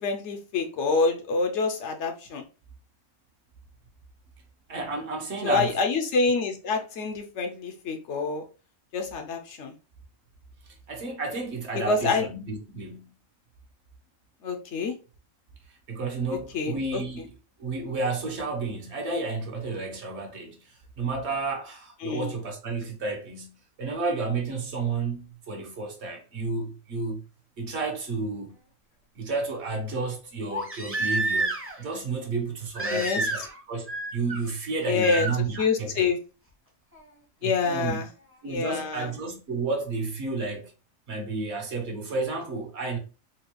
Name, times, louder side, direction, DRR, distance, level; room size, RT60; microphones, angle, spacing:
voice 1, 0.0-2.4 5.4-8.4 8.9-9.7 11.7-12.3 14.4-14.9 16.5-17.0 22.0-22.3 32.9-33.2 34.9-35.3 35.6-36.2 37.4-38.1 38.5-39.1, left 4 dB, 70° left, 0.8 m, -26 dB
voice 2, 4.7-5.8 10.9-13.1 15.9-17.3 17.6-27.2 27.6-28.5 29.2-36.1 37.4-38.0 38.4-40.7 41.1-43.0, right 3 dB, 60° right, 1.1 m, -31 dB
Crying sobbing, 30.5-31.8 32.7-33.6 33.9-34.4 35.0-35.3 36.9-37.0, right 2 dB, 15° right, 0.6 m, -29 dB
4.1 x 2.2 x 3.0 m
omnidirectional pair, 1.4 m